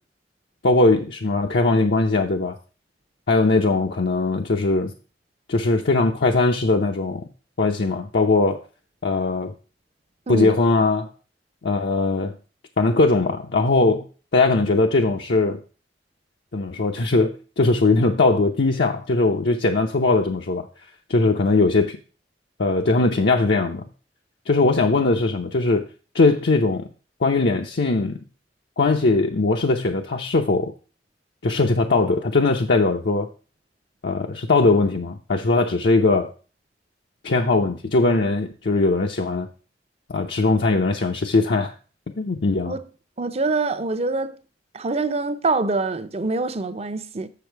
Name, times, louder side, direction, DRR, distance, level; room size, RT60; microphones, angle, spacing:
voice 1, 0.6-2.6 3.3-4.9 5.5-7.2 7.6-8.6 9.0-9.5 10.3-11.1 11.6-12.3 12.8-14.1 14.3-15.6 16.5-20.7 21.1-22.0 22.6-23.8 24.5-25.9 26.1-26.9 27.2-28.2 28.8-30.7 31.4-33.3 34.0-36.3 37.2-39.5 40.1-41.7 42.2-42.8, left 3 dB, 70° left, 0.7 m, -20 dB
voice 2, 43.2-44.4 44.7-47.3, right 3 dB, 35° right, 0.6 m, -25 dB
7.0 x 7.0 x 4.5 m
head